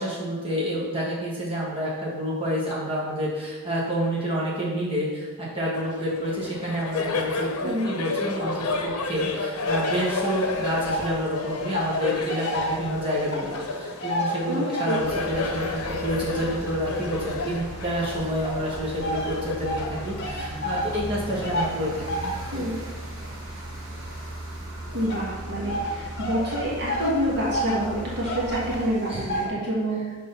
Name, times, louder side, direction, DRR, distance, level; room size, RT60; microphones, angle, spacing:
voice 1, 0.0-22.0 29.1-29.3, equal, 25° right, -7 dB, 1.5 m, -28 dB
Laughter, 5.7-20.7, left 3 dB, 85° left, 0.8 m, -32 dB
voice 2, 7.6-7.9 14.5-15.0 22.5-22.7 24.9-30.1, equal, 50° right, -5 dB, 1.4 m, -27 dB
sound 1, 9.6-11.2 11.5-15.2 15.7-17.8 18.4-29.5, equal, 50° left, 1.0 m, -32 dB
sound 2, 15.0-28.8, right 1 dB, 70° right, 1.0 m, -37 dB
6.2 x 3.8 x 5.4 m, 1.4 s
head